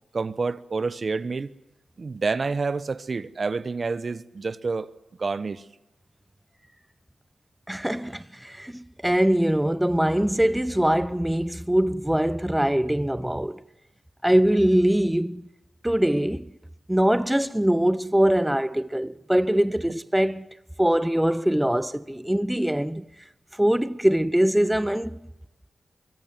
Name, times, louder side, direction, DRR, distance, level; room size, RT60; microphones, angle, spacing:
voice 1, 0.1-1.5 2.0-4.9 5.2-5.6, right 4 dB, 50° right, 1.1 m, -28 dB
voice 2, 7.7-13.6 14.2-15.4 15.8-16.5 16.9-20.5 20.8-23.0 23.6-25.2, right 1 dB, 5° right, 0.9 m, -22 dB
25.0 x 23.5 x 7.6 m
cardioid pair, 50°, 0 cm